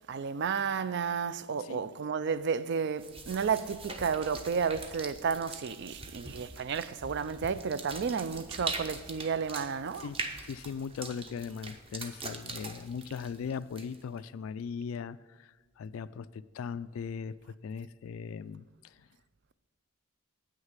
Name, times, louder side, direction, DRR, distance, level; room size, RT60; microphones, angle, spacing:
voice 1, 0.1-10.1, right 6 dB, 55° right, 0.4 m, -32 dB
sound 1, 3.0-14.2, right 3 dB, 25° right, 0.8 m, -43 dB
voice 2, 10.4-19.1, left 6 dB, 70° left, 0.3 m, -39 dB
8.8 x 6.4 x 7.4 m
head